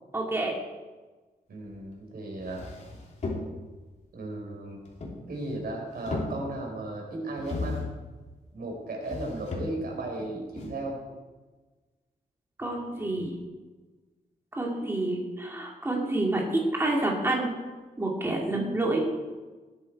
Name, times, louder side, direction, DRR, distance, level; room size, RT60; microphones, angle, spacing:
voice 1, 0.1-0.5 12.6-13.4 14.5-17.5 18.0-19.0, right 2 dB, 15° right, -1 dB, 2.3 m, -28 dB
voice 2, 1.5-2.6 4.1-4.8 5.3-7.9 8.5-11.0 18.5-18.8, right 2 dB, 75° right, 0 dB, 4.3 m, -35 dB
sound 1, 1.9-2.0 2.4-3.8 4.9-5.7 5.9-6.8 7.4-8.0 9.0-10.0 10.6-10.7, left 3 dB, 45° left, 3.0 m, -35 dB
19.0 x 8.9 x 4.5 m, 1.3 s
wide cardioid pair, 130°, 16 cm